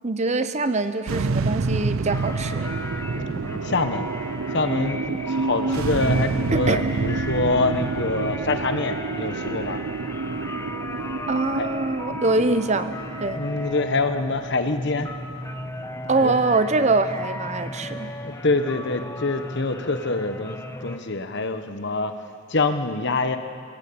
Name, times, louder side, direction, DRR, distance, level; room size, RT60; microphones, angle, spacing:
voice 1, 0.0-2.8 6.5-6.9 11.3-12.9 13.2-13.4 16.1-18.1, right 3 dB, 30° right, 11 dB, 0.7 m, -23 dB
sound 1, 1.1-17.5, right 4 dB, 65° right, 0.5 m, -29 dB
sound 2, 2.1-21.0, left 1 dB, 15° left, 0.8 m, -36 dB
voice 2, 3.6-4.1 4.5-5.0 5.3-9.8 11.5-11.7 13.3-15.1 16.2-16.4 18.2-23.4, left 3 dB, 50° left, 8 dB, 1.1 m, -25 dB
23.5 x 17.0 x 8.7 m, 2.4 s
head